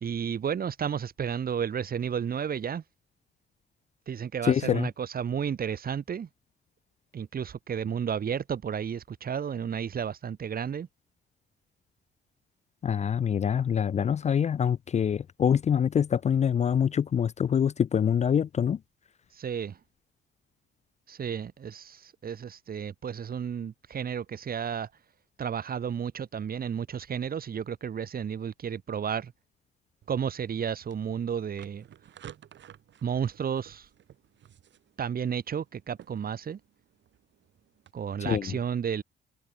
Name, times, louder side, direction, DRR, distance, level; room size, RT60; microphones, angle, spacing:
voice 1, 0.0-2.8 4.1-6.3 7.1-10.9 19.3-19.8 21.1-24.9 25.4-29.3 30.1-31.9 33.0-33.9 35.0-36.6 37.9-39.0, right 7 dB, 50° right, 1.9 m, -32 dB
voice 2, 4.5-4.9 12.8-18.8 38.2-38.5, left 8 dB, 35° left, 0.4 m, -25 dB
sound 1, 30.0-37.9, right 10 dB, 65° right, 5.3 m, -54 dB
cardioid pair, 90°, 20 cm